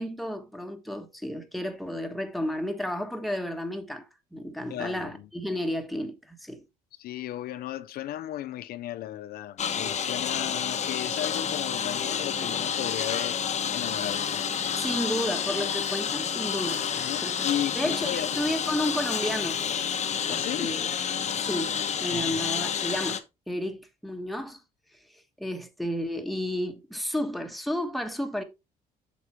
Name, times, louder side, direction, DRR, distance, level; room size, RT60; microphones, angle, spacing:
voice 1, 0.0-4.0 4.3-6.7 14.8-17.5 17.7-19.6 20.2-20.9 21.4-21.7 22.0-24.6 25.4-28.4, equal, ahead, 1.3 m, -32 dB
voice 2, 4.7-5.2 7.0-14.4 17.0-18.3 20.3-20.7 22.1-22.3, left 12 dB, 65° left, 0.5 m, -35 dB
Engine, 9.6-23.2, left 7 dB, 45° left, 1.0 m, -29 dB
sound 1, 12.0-12.8 14.4-15.4, right 7 dB, 60° right, 2.3 m, -50 dB
8.3 x 5.9 x 3.0 m
cardioid pair, 110°, 17 cm